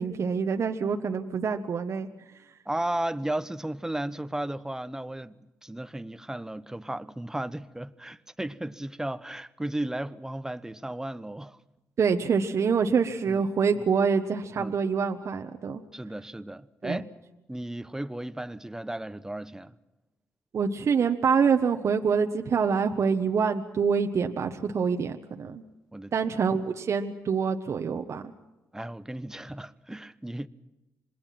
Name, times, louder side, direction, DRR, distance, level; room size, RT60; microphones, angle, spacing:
voice 1, 0.0-2.1 12.0-15.8 16.8-17.0 20.5-25.6 26.1-28.3, right 6 dB, 55° right, 1.3 m, -26 dB
voice 2, 2.6-5.3 5.6-11.6 13.3-13.5 13.8-13.9 14.5-14.8 15.9-17.1 17.5-19.7 25.9-26.1 28.7-30.5, right 1 dB, 10° right, 1.1 m, -34 dB
27.0 x 20.5 x 6.0 m
supercardioid pair, 65°, 6 cm